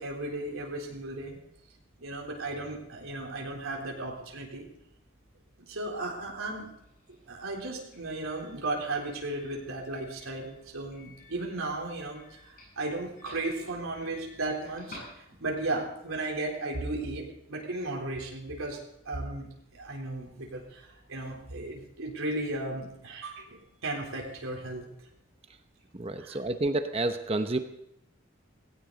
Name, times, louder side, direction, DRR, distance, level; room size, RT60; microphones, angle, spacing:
voice 1, 0.0-1.4 2.0-4.7 5.6-6.7 7.3-24.9 26.2-26.4, right 2 dB, 90° right, -1 dB, 3.7 m, -35 dB
Doorbell, 6.7-15.8, left 2 dB, 45° left, 7.7 m, -54 dB
voice 2, 25.9-27.6, right 2 dB, 30° right, 8 dB, 0.8 m, -29 dB
18.0 x 17.0 x 4.0 m, 0.78 s
head